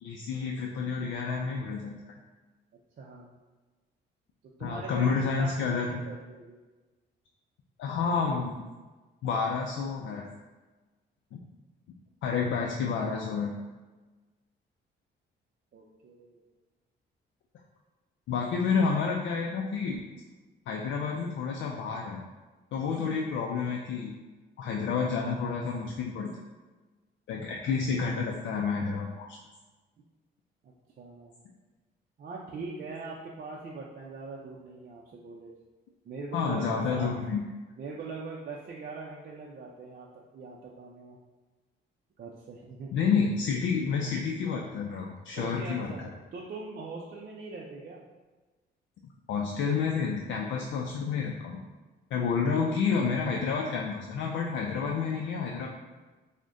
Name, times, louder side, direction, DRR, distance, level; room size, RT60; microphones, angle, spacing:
voice 1, 0.0-1.9 4.6-6.0 7.8-8.5 9.2-10.3 11.3-11.4 12.2-13.5 18.3-20.0 20.7-22.2 22.7-24.1 24.6-26.3 27.3-29.4 36.3-37.4 42.9-45.9 49.3-51.6 52.1-55.7, left 5 dB, 70° left, 0 dB, 0.4 m, -29 dB
voice 2, 3.0-3.3 4.4-6.6 15.7-16.4 30.6-31.3 32.2-35.5 36.0-37.1 37.7-41.2 42.2-42.9 45.4-48.0, right 3 dB, 50° right, -3 dB, 0.5 m, -42 dB
6.0 x 2.1 x 2.6 m, 1.3 s
cardioid pair, 90°, 20 cm